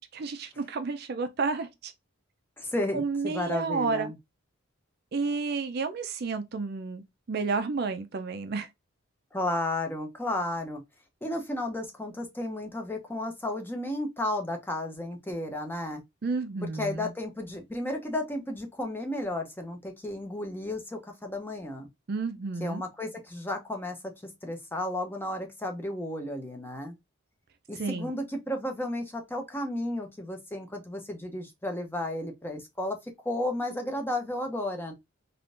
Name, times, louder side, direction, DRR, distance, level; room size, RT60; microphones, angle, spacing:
voice 1, 0.1-1.9 2.9-4.1 5.1-8.7 16.2-17.1 22.1-22.8 27.8-28.1, right 4 dB, 45° right, 0.4 m, -31 dB
voice 2, 2.6-4.1 9.3-10.8 11.2-16.0 16.6-21.9 22.6-27.0 27.7-34.9, left 1 dB, 10° left, 0.6 m, -33 dB
3.6 x 2.5 x 2.4 m
head